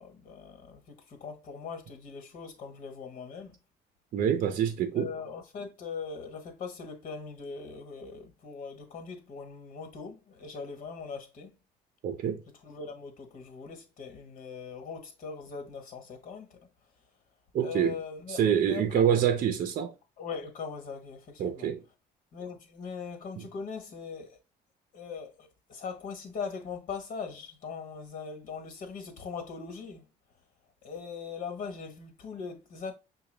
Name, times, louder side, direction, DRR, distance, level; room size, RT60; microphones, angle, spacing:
voice 1, 0.0-3.5 4.9-11.6 12.6-16.6 17.6-19.1 20.2-21.7 22.3-24.4 24.9-30.1 30.8-32.9, left 5 dB, 55° left, 1.3 m, -40 dB
voice 2, 4.1-5.1 12.0-12.4 17.5-18.0 18.3-19.9 21.4-21.8 23.4-23.5, right 9 dB, 55° right, 0.6 m, -26 dB
5.8 x 2.3 x 3.3 m
cardioid pair, 110°, 17 cm